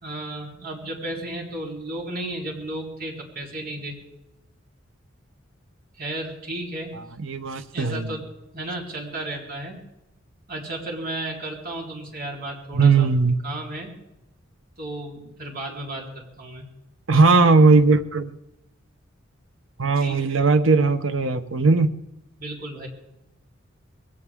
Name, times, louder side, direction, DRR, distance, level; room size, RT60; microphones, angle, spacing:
voice 1, 0.0-4.0 5.9-6.9 7.7-8.2 8.5-9.8 10.5-13.1 13.4-13.9 14.8-16.7 20.0-20.4 22.4-22.9, right 1 dB, 45° right, -2 dB, 3.9 m, -33 dB
voice 2, 7.2-8.1 12.7-13.4 17.1-18.3 19.8-21.9, right 4 dB, 70° right, 9 dB, 0.9 m, -18 dB
21.0 x 17.0 x 3.7 m, 0.94 s
head